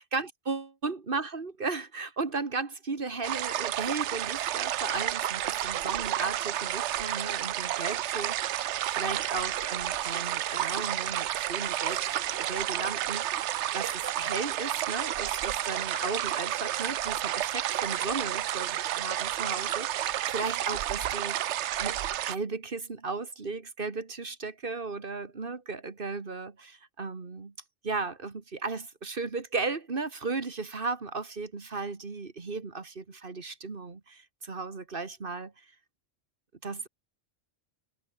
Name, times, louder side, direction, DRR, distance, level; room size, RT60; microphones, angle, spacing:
voice 1, 0.0-22.0 22.3-27.5 27.8-35.7 36.6-36.9, right 4 dB, 50° right, 1.9 m, -35 dB
sound 1, 3.2-22.3, right 12 dB, 85° right, 0.9 m, -31 dB
omnidirectional pair, 1.1 m